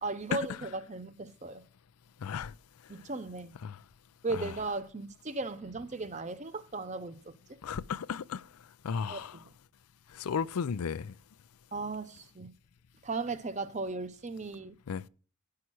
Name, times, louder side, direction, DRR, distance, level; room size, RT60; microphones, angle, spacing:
voice 1, 0.0-1.6 2.9-3.5 4.2-7.4 9.1-9.5 11.7-12.5 13.0-14.8, right 3 dB, 30° right, 0.7 m, -36 dB
voice 2, 2.2-2.5 3.6-3.8 4.4-4.5 7.6-8.4 8.8-9.4 10.1-11.1 14.9-15.0, left 6 dB, 85° left, 0.4 m, -34 dB
11.0 x 5.8 x 6.2 m
head